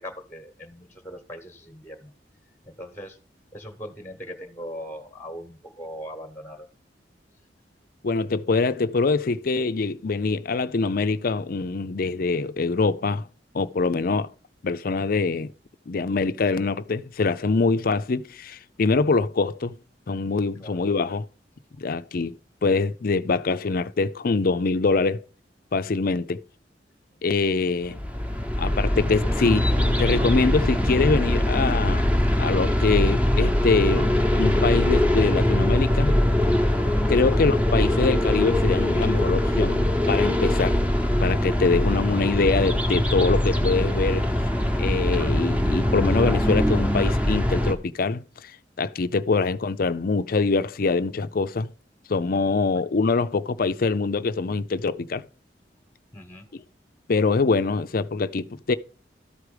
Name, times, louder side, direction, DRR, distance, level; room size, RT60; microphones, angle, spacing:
voice 1, 0.0-2.1 2.7-3.2 3.5-6.7 20.6-20.8 27.6-27.7 37.2-37.4 56.1-56.5, equal, 10° left, 1.1 m, -40 dB
voice 2, 8.0-13.3 13.5-14.3 14.6-15.5 15.9-19.7 20.1-21.3 21.8-22.3 22.6-25.2 25.7-26.4 27.2-28.0 28.6-29.7 30.0-32.0 32.4-34.1 34.4-36.2 37.1-40.8 41.2-44.3 44.8-48.5 48.8-51.7 52.1-55.2 56.5-56.6 57.1-58.8, left 4 dB, 55° left, 0.5 m, -24 dB
sound 1, 27.8-47.7, left 1 dB, 10° right, 1.0 m, -22 dB
13.0 x 4.8 x 4.9 m
head